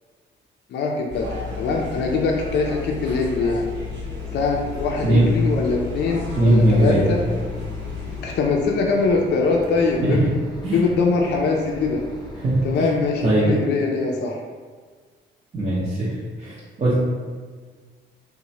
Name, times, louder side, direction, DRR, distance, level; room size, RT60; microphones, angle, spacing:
voice 1, 0.7-1.3 1.6-3.7 4.3-7.2 8.2-10.3 10.7-12.0 12.6-14.4, left 4 dB, 60° left, 0 dB, 0.4 m, -22 dB
sound 1, 1.1-8.2, left 5 dB, 65° right, 1.1 m, -33 dB
Mechanisms, 2.5-13.3, left 1 dB, 20° left, 0.7 m, -39 dB
voice 2, 6.4-7.1 10.0-10.3 10.6-10.9 12.3-12.9 13.2-13.5 15.5-16.1 16.4-16.9, right 1 dB, 30° right, -8 dB, 0.6 m, -19 dB
2.9 x 2.1 x 2.7 m, 1.6 s
cardioid pair, 90°, 20 cm